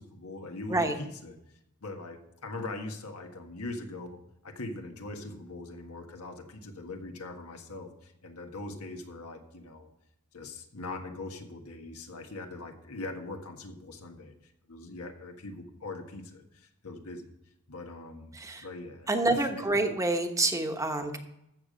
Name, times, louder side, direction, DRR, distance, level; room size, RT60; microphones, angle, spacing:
voice 1, 0.0-1.4 1.8-9.9 10.3-14.3 14.7-17.3 17.7-19.5 19.7-19.8, left 2 dB, 85° left, 4 dB, 1.5 m, -41 dB
voice 2, 18.3-18.6 19.1-21.2, right 2 dB, 15° right, 5 dB, 1.1 m, -27 dB
14.0 x 6.9 x 5.2 m, 0.82 s
head